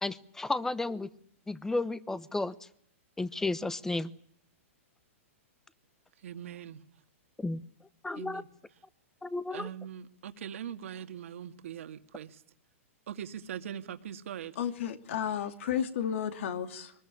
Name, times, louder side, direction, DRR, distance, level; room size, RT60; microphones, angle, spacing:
voice 1, 0.0-1.1 1.5-2.5 3.2-4.1 7.4-7.6 8.0-8.4 9.2-9.7, left 2 dB, 5° left, 17 dB, 1.0 m, -32 dB
voice 2, 6.2-6.8 8.2-8.5 9.5-12.4 13.1-14.6, right 9 dB, 70° right, 8 dB, 2.2 m, -41 dB
voice 3, 14.6-16.9, left 9 dB, 65° left, 8 dB, 2.5 m, -32 dB
23.0 x 20.0 x 8.5 m, 0.63 s
hypercardioid pair, 135°, 7 cm